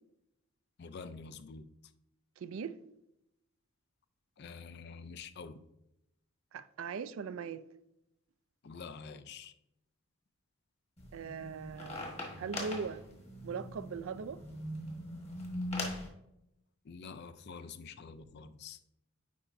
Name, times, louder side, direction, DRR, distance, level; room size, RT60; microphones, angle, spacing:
voice 1, 0.8-1.6 4.4-5.6 8.6-9.5 16.8-18.8, left 5 dB, 50° left, 0.4 m, -47 dB
voice 2, 2.4-2.8 6.5-7.6 11.1-12.1 12.4-13.0 13.4-14.4, right 6 dB, 70° right, 0.4 m, -40 dB
sound 1, 11.0-16.1, left 1 dB, 30° left, 1.3 m, -41 dB
8.4 x 5.0 x 2.6 m
head